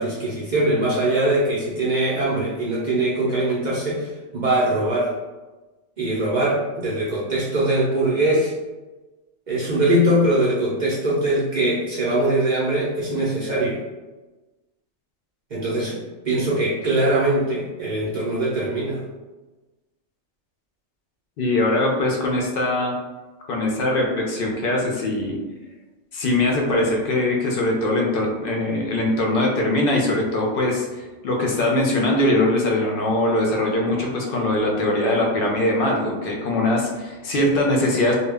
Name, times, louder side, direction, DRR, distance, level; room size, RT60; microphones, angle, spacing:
voice 1, 0.0-5.1 6.0-8.5 9.5-13.8 15.5-16.0 16.2-19.0, right 1 dB, 55° right, -7 dB, 0.5 m, -22 dB
voice 2, 21.4-22.9 23.5-25.4 26.1-38.1, left 1 dB, 60° left, -1 dB, 0.6 m, -21 dB
2.2 x 2.1 x 3.3 m, 1.2 s
omnidirectional pair, 1.2 m